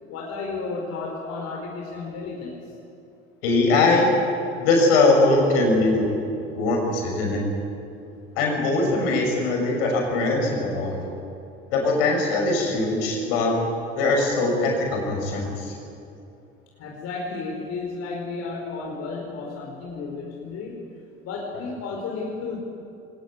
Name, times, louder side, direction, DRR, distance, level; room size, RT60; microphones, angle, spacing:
voice 1, 0.1-2.5 6.4-6.5 16.8-20.7 21.2-22.6, left 4 dB, 55° left, -2 dB, 4.6 m, -33 dB
voice 2, 3.4-4.1 4.6-6.1 6.5-7.4 8.4-11.1 11.7-13.5 14.0-15.7, left 2 dB, 70° left, 1 dB, 6.4 m, -21 dB
22.0 x 18.0 x 9.6 m, 2.6 s
hypercardioid pair, 70°, 31 cm